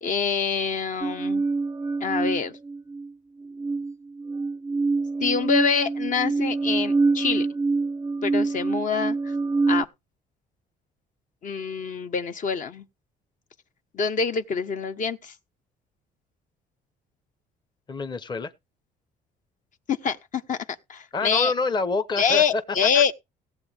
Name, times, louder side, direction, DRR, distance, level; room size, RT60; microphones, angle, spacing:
voice 1, 0.0-1.4 2.0-2.5 5.2-7.5 8.2-9.3 9.7-9.9 11.4-12.8 13.9-15.3 19.9-20.6 20.9-21.5 22.2-23.1, left 6 dB, 50° left, 1.3 m, -25 dB
sound 1, 1.0-3.1 3.4-9.8, right 3 dB, 15° right, 0.5 m, -26 dB
voice 2, 17.9-18.5 21.1-22.6 22.9-23.1, left 3 dB, 25° left, 1.1 m, -27 dB
17.5 x 8.1 x 3.6 m
cardioid pair, 110°, 17 cm